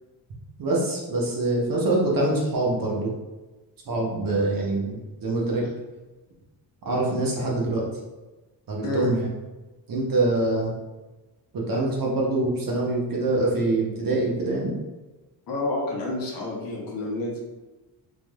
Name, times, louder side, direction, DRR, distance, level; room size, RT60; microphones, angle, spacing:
voice 1, 0.6-3.1 3.9-5.6 6.8-7.8 8.7-9.3 9.9-10.7 11.5-14.7, right 2 dB, 45° right, -3 dB, 0.8 m, -24 dB
voice 2, 8.8-9.1 15.5-17.4, left 2 dB, 45° left, -2 dB, 0.8 m, -29 dB
3.3 x 2.4 x 2.2 m, 1.1 s
cardioid pair, 105°, 48 cm